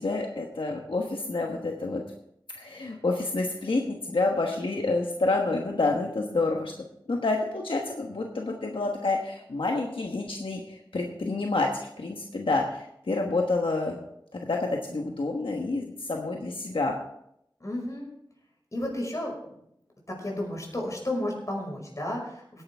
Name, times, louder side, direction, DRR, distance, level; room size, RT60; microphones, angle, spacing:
voice 1, 0.0-2.0 2.5-6.7 7.1-11.7 12.0-14.0 14.3-16.9, left 3 dB, 80° left, 1 dB, 1.3 m, -28 dB
voice 2, 17.6-18.1 18.7-19.3 20.1-22.3, left 1 dB, 40° left, -1 dB, 5.3 m, -32 dB
17.5 x 10.5 x 3.5 m, 0.76 s
wide cardioid pair, 55°, 9 cm